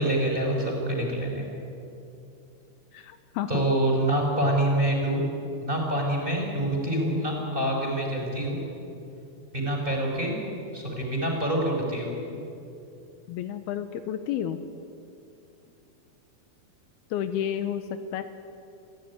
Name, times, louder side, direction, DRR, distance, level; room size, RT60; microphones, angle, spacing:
voice 1, 0.0-1.5 3.5-5.2 5.6-8.6 9.5-10.4 10.7-12.1, right 1 dB, 10° right, 0 dB, 5.2 m, -26 dB
voice 2, 2.9-3.6 13.3-14.6 17.1-17.8 18.1-18.2, left 10 dB, 80° left, 10 dB, 2.7 m, -31 dB
26.5 x 16.0 x 10.0 m, 2.7 s
omnidirectional pair, 4.7 m